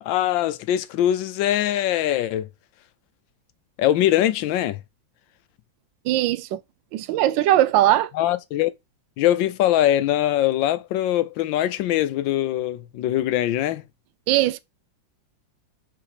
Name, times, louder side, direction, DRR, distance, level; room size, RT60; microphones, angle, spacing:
voice 1, 0.0-2.5 3.8-4.8 8.1-8.7 9.2-13.8, left 12 dB, 80° left, 1.4 m, -22 dB
voice 2, 6.0-6.6 6.9-8.1 14.3-14.6, right 13 dB, 80° right, 1.3 m, -20 dB
5.6 x 4.2 x 4.9 m
omnidirectional pair, 2.1 m